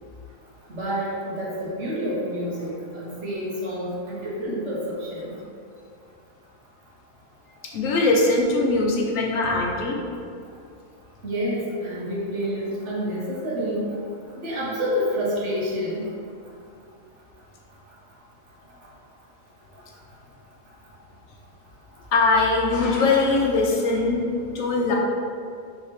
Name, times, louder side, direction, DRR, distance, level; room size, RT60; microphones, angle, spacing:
voice 1, 0.7-5.4 11.2-13.9 14.4-16.1, equal, 60° right, -6 dB, 1.2 m, -28 dB
voice 2, 7.7-10.0 22.1-24.3 24.5-25.0, left 3 dB, 75° left, -1 dB, 1.0 m, -21 dB
4.7 x 3.5 x 3.0 m, 2.3 s
omnidirectional pair, 1.5 m